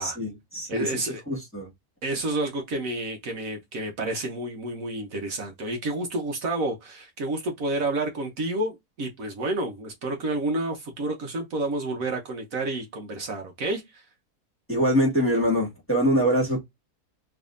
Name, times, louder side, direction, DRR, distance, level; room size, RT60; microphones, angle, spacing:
voice 1, 0.0-1.7 14.7-16.6, equal, 10° left, 1.5 m, -24 dB
voice 2, 0.7-1.2 2.0-14.0, right 2 dB, 60° right, 1.3 m, -30 dB
3.6 x 3.1 x 2.4 m
omnidirectional pair, 1.7 m